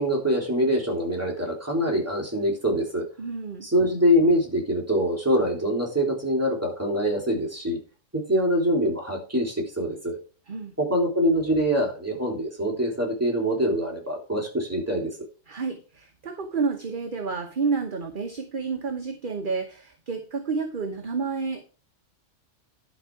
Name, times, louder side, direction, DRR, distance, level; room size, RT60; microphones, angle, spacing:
voice 1, 0.0-3.1 3.6-7.8 8.1-10.2 10.8-15.1, equal, 10° right, -1 dB, 3.2 m, -24 dB
voice 2, 3.2-3.7 10.5-10.7 15.5-21.7, right 4 dB, 40° right, 5 dB, 1.1 m, -30 dB
11.0 x 5.4 x 4.7 m, 0.35 s
omnidirectional pair, 1.4 m